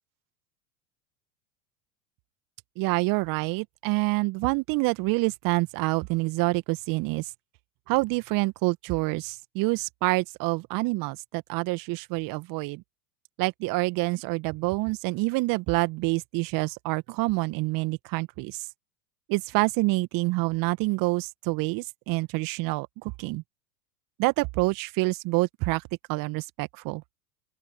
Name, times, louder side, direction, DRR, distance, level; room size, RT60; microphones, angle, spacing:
voice 1, 2.8-7.3 7.9-12.8 13.4-18.7 19.3-23.4 24.2-25.8 26.1-27.0, right 23 dB, 45° right, 2.0 m, -27 dB
open air
figure-of-eight pair, 85°, 44 cm